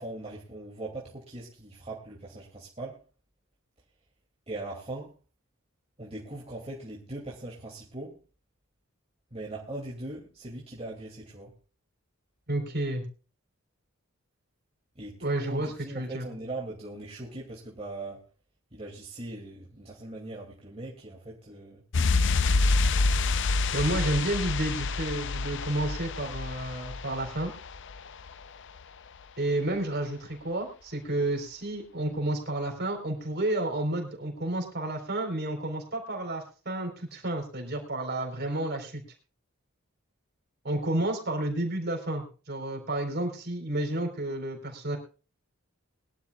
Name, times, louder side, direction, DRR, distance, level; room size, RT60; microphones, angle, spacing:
voice 1, 0.0-3.0 4.5-5.1 6.0-8.2 9.3-11.5 15.0-18.2 18.7-21.8, right 2 dB, 30° right, -3 dB, 2.5 m, -40 dB
voice 2, 12.5-13.0 15.2-16.3 23.7-27.5 29.4-39.0 40.6-45.0, right 1 dB, 50° right, 3 dB, 4.0 m, -31 dB
sound 1, 21.9-28.4 28.7-28.8, left 3 dB, 60° left, 0.6 m, -27 dB
22.0 x 12.0 x 2.4 m, 0.35 s
head